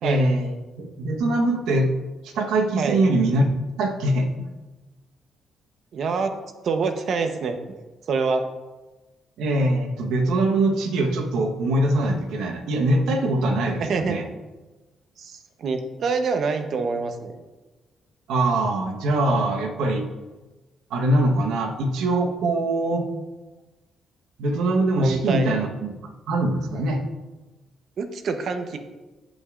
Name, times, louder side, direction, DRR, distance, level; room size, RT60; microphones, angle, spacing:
voice 1, 0.0-1.9 2.2-3.4 3.8-4.5 9.4-14.2 18.3-20.1 20.9-23.1 24.4-25.9 26.3-27.0, right 1 dB, 85° right, 2 dB, 1.1 m, -22 dB
voice 2, 5.9-6.4 6.6-7.6 8.1-8.5 13.8-14.2 15.2-17.4 25.0-25.5 28.0-28.8, right 4 dB, 60° right, 7 dB, 0.8 m, -26 dB
15.5 x 5.2 x 2.5 m, 1.2 s
cardioid pair, 90°, 0 cm